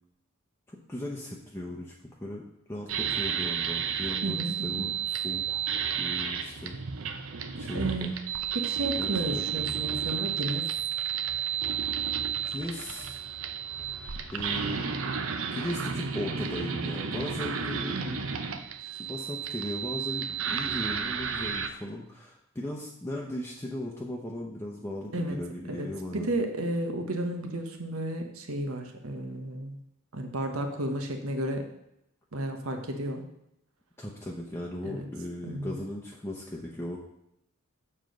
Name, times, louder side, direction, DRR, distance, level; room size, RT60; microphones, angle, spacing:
voice 1, 0.7-5.6 6.0-7.2 7.6-8.1 9.0-9.4 12.5-13.2 14.3-14.9 15.5-18.0 19.0-26.3 34.0-37.0, left 1 dB, 10° left, -3 dB, 0.8 m, -37 dB
sound 1, 2.9-21.7, right 7 dB, 70° right, 0.7 m, -32 dB
voice 2, 4.2-4.9 7.7-8.2 8.5-10.7 17.9-18.3 25.1-25.4 25.7-25.9 26.1-29.8 30.1-31.6 32.3-33.2 34.8-35.1 35.4-35.8, right 1 dB, 90° right, 4 dB, 1.2 m, -32 dB
7.3 x 4.5 x 6.3 m, 0.81 s
head